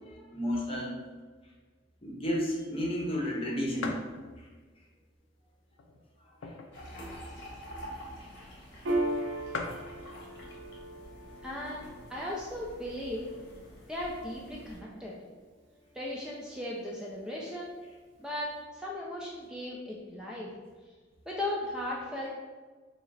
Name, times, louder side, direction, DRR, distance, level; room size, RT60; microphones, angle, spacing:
voice 1, 0.3-0.9 2.0-4.0 6.4-6.5, equal, 30° left, -2 dB, 0.9 m, -31 dB
sound 1, 3.8-4.2 4.8-4.9 5.7-6.9 7.2-7.3 7.5-7.8 8.5-8.6 8.9-9.0 9.2-9.3 9.5-9.9 10.8-11.1 11.7-11.8 12.0-12.8, left 3 dB, 85° left, 0.4 m, -39 dB
sound 2, 6.7-14.8, equal, 70° left, 1.2 m, -48 dB
Piano, 8.8-15.8, right 1 dB, 70° right, 0.6 m, -38 dB
voice 2, 11.4-13.3 13.9-15.1 15.9-17.8 18.2-20.5 21.3-22.3, left 1 dB, 5° right, -4 dB, 0.4 m, -37 dB
5.0 x 2.0 x 4.0 m, 1.4 s
head